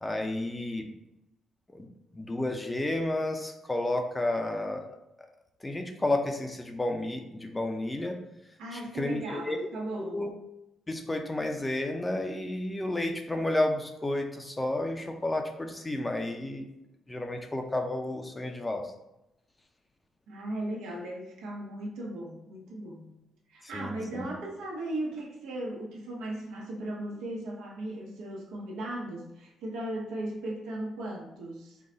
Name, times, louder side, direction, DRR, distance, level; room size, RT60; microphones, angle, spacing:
voice 1, 0.0-0.9 1.7-1.9 2.1-4.9 5.6-8.2 8.7-9.6 10.0-10.3 10.9-16.6 17.1-18.9 23.7-24.3, left 1 dB, 15° left, 4 dB, 0.5 m, -31 dB
voice 2, 8.6-10.2 20.3-23.1 23.5-31.8, right 1 dB, 90° right, -2 dB, 1.0 m, -37 dB
3.9 x 2.2 x 3.9 m, 0.88 s
cardioid pair, 90°, 0 cm